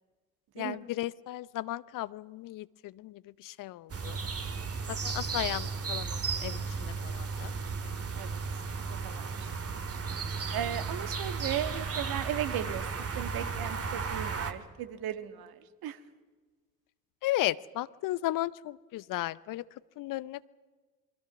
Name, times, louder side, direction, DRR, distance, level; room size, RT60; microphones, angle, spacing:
voice 1, 0.6-4.2 4.9-7.5 17.2-19.6 20.0-20.5, left 16 dB, 50° left, 19 dB, 0.6 m, -35 dB
sound 1, 3.9-14.5, right 5 dB, 35° right, 2.1 m, -34 dB
voice 2, 8.9-9.5 10.5-15.5 15.8-16.0, right 11 dB, 55° right, 10 dB, 1.7 m, -36 dB
27.0 x 23.0 x 6.1 m, 1.4 s
figure-of-eight pair, 55°, 44 cm